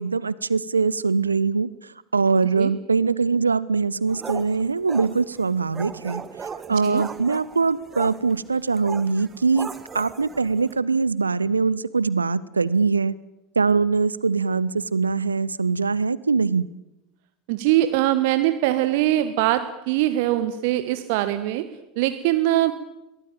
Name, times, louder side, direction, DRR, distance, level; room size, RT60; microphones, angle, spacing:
voice 1, 0.0-13.1 13.6-16.7, right 4 dB, 80° right, 20 dB, 0.8 m, -22 dB
sound 1, 4.1-10.8, right 6 dB, 25° right, 1.7 m, -38 dB
voice 2, 6.7-7.0 17.5-22.7, right 14 dB, 55° right, 11 dB, 1.4 m, -22 dB
23.0 x 18.0 x 8.9 m, 0.94 s
figure-of-eight pair, 80°, 0 cm